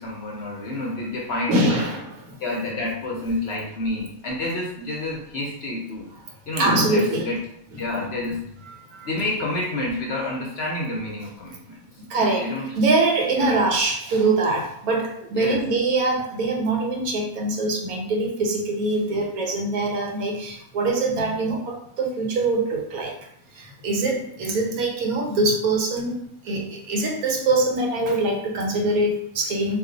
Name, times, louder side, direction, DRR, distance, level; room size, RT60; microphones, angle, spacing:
voice 1, 0.0-1.8 2.4-6.1 6.5-7.4 7.8-8.4 9.0-11.8 12.4-12.7 13.3-13.6 15.3-15.6, left 2 dB, 60° left, -2 dB, 0.7 m, -29 dB
voice 2, 1.5-2.2 6.6-7.3 7.9-8.0 9.0-9.1 12.1-23.1 23.8-29.8, right 2 dB, 90° right, 0 dB, 1.2 m, -23 dB
2.5 x 2.4 x 3.8 m, 0.71 s
omnidirectional pair, 1.5 m